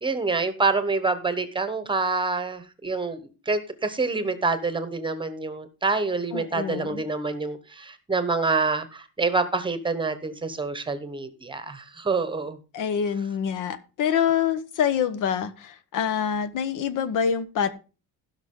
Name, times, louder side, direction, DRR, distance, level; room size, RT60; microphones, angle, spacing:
voice 1, 0.0-3.2 3.5-12.6, right 3 dB, 15° right, 1.0 m, -27 dB
voice 2, 6.3-7.0 12.7-17.7, left 8 dB, 70° left, 1.1 m, -26 dB
16.5 x 5.9 x 3.7 m
cardioid pair, 170°, 33 cm